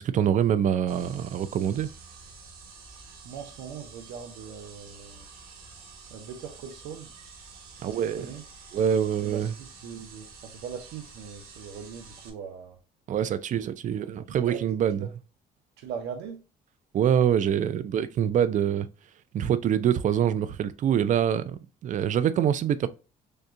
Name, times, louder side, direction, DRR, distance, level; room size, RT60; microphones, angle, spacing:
voice 1, 0.0-1.9 7.8-8.3 8.7-9.5 13.1-15.1 16.9-18.9 19.3-22.9, right 9 dB, 50° right, 0.5 m, -25 dB
sound 1, 0.9-12.3, right 4 dB, 65° right, 1.5 m, -48 dB
voice 2, 3.2-5.3 6.1-7.1 7.9-8.4 9.2-12.8 14.4-14.6 15.0-15.1 15.8-16.4, right 7 dB, 90° right, 0.8 m, -40 dB
6.5 x 2.3 x 2.6 m
cardioid pair, 110°, 17 cm